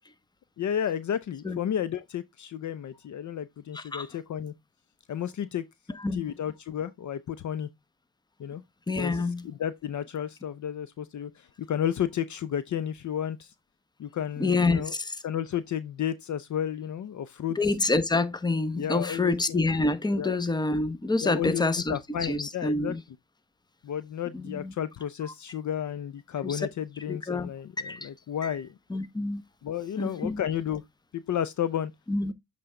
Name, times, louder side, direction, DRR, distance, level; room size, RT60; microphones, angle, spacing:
voice 1, 0.6-4.5 5.1-5.6 6.1-7.7 8.4-8.6 9.0-13.5 14.0-14.9 15.2-17.6 18.8-19.6 20.2-20.4 21.2-21.6 21.9-22.9 23.8-28.7 29.6-30.8 31.1-31.9, left 9 dB, 50° left, 0.6 m, -32 dB
voice 2, 3.7-4.1 6.0-6.2 8.9-9.5 14.4-15.1 17.6-23.0 24.3-24.7 26.4-26.6 27.1-27.5 27.8-28.1 28.4-28.5 28.9-29.4 30.0-30.4 32.1-32.3, left 3 dB, 10° left, 0.9 m, -27 dB
7.7 x 3.6 x 3.7 m
cardioid pair, 80°, 39 cm